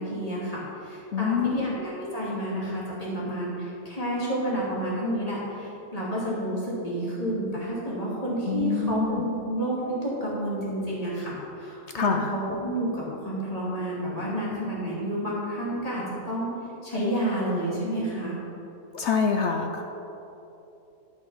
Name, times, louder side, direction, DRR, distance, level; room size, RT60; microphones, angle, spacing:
voice 1, 0.0-9.8 10.0-16.5 16.8-18.4, right 1 dB, 20° left, -7 dB, 2.5 m, -30 dB
voice 2, 1.1-1.8 8.5-9.2 11.9-12.3 18.9-19.8, left 5 dB, 70° left, 4 dB, 0.6 m, -25 dB
11.0 x 6.1 x 5.6 m, 3.0 s
omnidirectional pair, 1.8 m